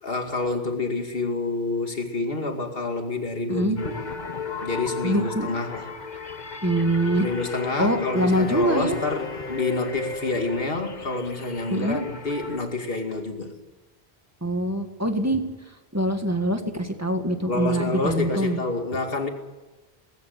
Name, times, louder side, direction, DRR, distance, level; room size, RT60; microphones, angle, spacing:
voice 1, 0.0-4.0 4.6-5.9 7.2-13.5 17.5-19.3, left 3 dB, 65° left, 4 dB, 2.6 m, -28 dB
sound 1, 3.8-12.6, left 5 dB, 45° left, 1.4 m, -34 dB
voice 2, 5.0-5.5 6.6-7.3 7.8-9.0 11.7-12.0 14.4-15.4 15.9-18.6, right 1 dB, 15° right, 5 dB, 2.0 m, -24 dB
19.5 x 16.5 x 9.5 m, 1.2 s
omnidirectional pair, 1.0 m